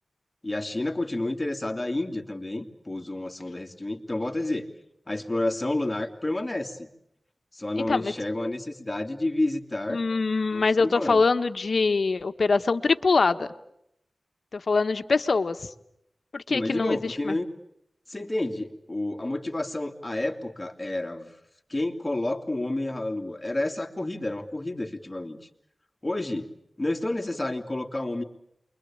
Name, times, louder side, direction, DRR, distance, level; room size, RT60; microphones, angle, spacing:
voice 1, 0.4-4.7 5.1-6.9 7.5-10.0 10.5-11.2 16.5-17.5 18.1-21.3 21.7-25.4 26.0-26.5 26.8-28.2, left 2 dB, 20° left, 4 dB, 2.7 m, -30 dB
voice 2, 9.9-13.5 14.5-15.7 16.3-17.4, left 4 dB, 65° left, 10 dB, 1.3 m, -24 dB
28.5 x 23.0 x 8.8 m, 0.80 s
wide cardioid pair, 90°, 0 cm